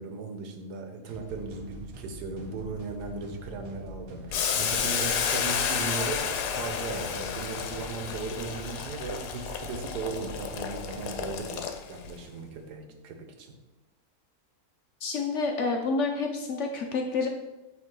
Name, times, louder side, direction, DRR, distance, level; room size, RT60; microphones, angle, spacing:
voice 1, 0.0-13.5, right 4 dB, 85° right, 5 dB, 1.4 m, -37 dB
sound 1, 1.1-11.4, right 1 dB, 65° right, 1.3 m, -44 dB
Boiling, 4.3-12.1, left 7 dB, 85° left, 1.2 m, -31 dB
voice 2, 15.0-17.3, left 4 dB, 65° left, 3 dB, 0.8 m, -28 dB
7.9 x 3.2 x 3.7 m, 1.1 s
omnidirectional pair, 1.7 m